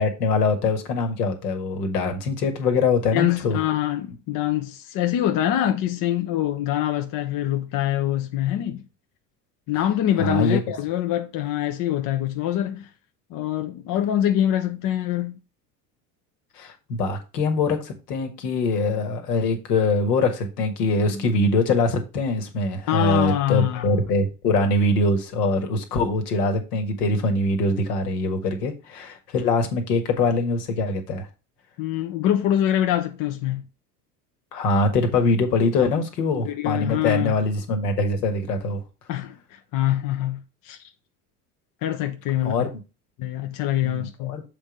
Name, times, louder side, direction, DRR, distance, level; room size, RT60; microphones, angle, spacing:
voice 1, 0.0-3.6 10.2-10.6 16.6-31.3 34.5-38.8 42.4-42.7 43.8-44.4, left 2 dB, 75° left, 1.7 m, -23 dB
voice 2, 3.1-8.8 9.7-12.9 13.3-15.4 22.9-24.0 31.8-33.6 36.4-37.3 39.1-40.9 41.8-42.7 43.2-44.4, left 12 dB, 45° left, 0.8 m, -24 dB
7.3 x 3.6 x 5.2 m
hypercardioid pair, 75°, 47 cm